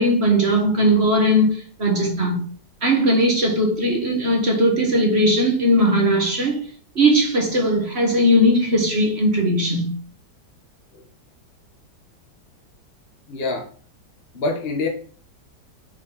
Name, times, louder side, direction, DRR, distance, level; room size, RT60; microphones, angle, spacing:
voice 1, 0.0-2.4 2.8-6.6 7.0-9.9, equal, 35° right, 2.0 m, -18 dB
voice 2, 13.3-13.7 14.3-14.9, left 3 dB, 35° left, 1.5 m, -25 dB
8.9 x 4.9 x 4.2 m
omnidirectional pair, 1.9 m